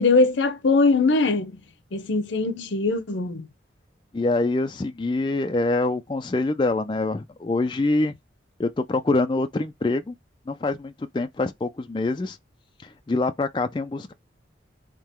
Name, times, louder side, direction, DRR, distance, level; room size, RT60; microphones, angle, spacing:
voice 1, 0.0-1.6 1.9-3.5, left 3 dB, 85° left, 0.7 m, -21 dB
voice 2, 4.1-8.2 8.6-10.1 10.5-12.4 12.8-14.1, left 2 dB, 25° left, 0.3 m, -25 dB
3.7 x 2.8 x 4.4 m
head